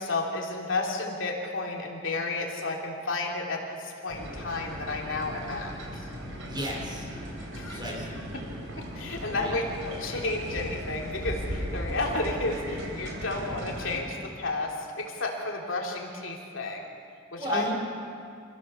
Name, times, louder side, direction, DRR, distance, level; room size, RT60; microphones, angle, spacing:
voice 1, 0.0-6.1 7.5-7.8 8.3-8.4 8.8-16.9 17.3-17.7, left 2 dB, 70° left, 0 dB, 3.1 m, -32 dB
sound 1, 4.1-14.0, equal, 85° right, 4.4 m, -37 dB
voice 2, 6.5-7.1 7.6-8.1 9.3-9.6 17.4-17.7, equal, 25° right, -2 dB, 5.2 m, -33 dB
26.0 x 15.5 x 7.2 m, 2.3 s
head